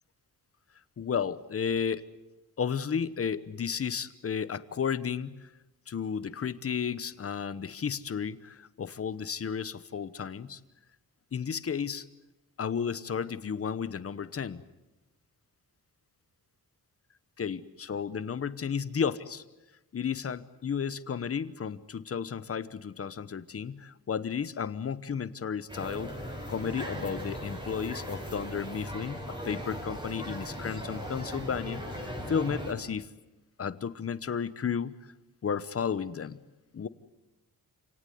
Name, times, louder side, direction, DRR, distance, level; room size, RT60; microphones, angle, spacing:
voice 1, 1.0-2.0 2.6-5.5 5.9-10.6 11.3-12.1 12.6-14.6 17.4-19.4 19.9-26.1 26.5-33.1 33.6-34.9 35.4-36.4 36.7-36.9, left 7 dB, 40° left, 15 dB, 1.0 m, -33 dB
sound 1, 25.7-32.7, equal, 10° right, 6.2 m, -38 dB
28.5 x 18.0 x 9.5 m, 1.0 s
wide cardioid pair, 140°, 36 cm